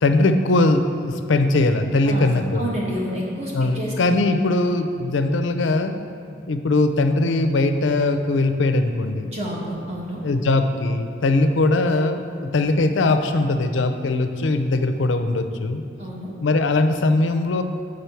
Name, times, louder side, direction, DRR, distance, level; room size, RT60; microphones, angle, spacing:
voice 1, 0.0-2.7 3.5-6.0 6.5-9.3 10.2-15.8 16.4-17.6, left 2 dB, 85° left, 8 dB, 0.5 m, -20 dB
voice 2, 2.5-3.9 9.3-10.2 16.0-16.3, equal, 35° right, -4 dB, 1.3 m, -29 dB
6.8 x 5.2 x 4.5 m, 2.4 s
head